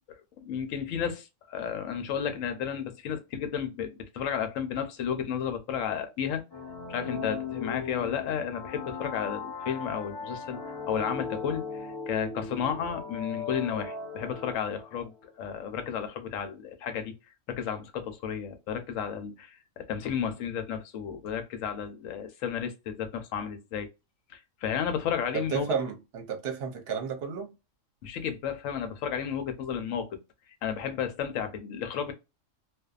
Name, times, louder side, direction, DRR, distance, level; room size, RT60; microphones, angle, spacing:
voice 1, 0.4-6.4 6.9-17.1 17.5-23.9 24.3-25.7 28.0-30.1 30.6-32.1, left 8 dB, 75° left, 1.0 m, -33 dB
sound 1, 6.5-15.1, left 5 dB, 35° left, 0.3 m, -38 dB
voice 2, 25.3-27.5, right 6 dB, 55° right, 0.9 m, -32 dB
2.6 x 2.3 x 2.3 m
omnidirectional pair, 1.4 m